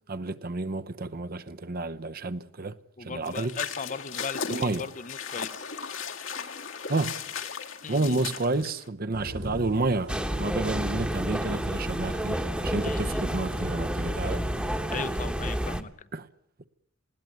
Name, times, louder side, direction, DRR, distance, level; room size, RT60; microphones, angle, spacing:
voice 1, 0.1-2.7 3.0-3.5 4.5-4.9 6.9-7.2 7.9-14.4 16.1-16.3, right 2 dB, 50° right, 0.8 m, -30 dB
voice 2, 3.0-5.7 7.8-8.3 12.8-13.2 14.9-16.1, left 5 dB, 40° left, 0.8 m, -38 dB
sound 1, 3.2-8.9, left 6 dB, 75° left, 2.0 m, -36 dB
sound 2, 9.1-15.1, right 1 dB, 85° right, 7.9 m, -41 dB
sound 3, 10.1-15.8, equal, 5° right, 1.1 m, -30 dB
20.0 x 17.0 x 9.3 m
head